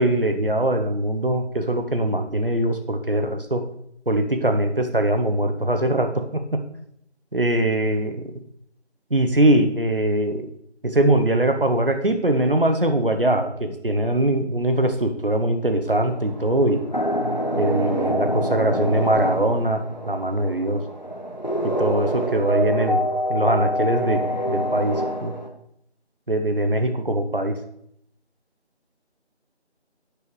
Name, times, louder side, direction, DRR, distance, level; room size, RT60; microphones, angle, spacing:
voice 1, 0.0-3.6 4.1-6.1 7.3-8.2 9.1-10.5 10.8-16.8 17.6-19.8 20.1-20.8 21.6-23.0 23.3-25.3 26.3-27.5, right 1 dB, 50° right, 6 dB, 1.1 m, -22 dB
sound 1, 15.9-25.5, equal, 40° left, 0.8 m, -26 dB
11.0 x 8.3 x 3.3 m, 0.72 s
figure-of-eight pair, 180°, 34 cm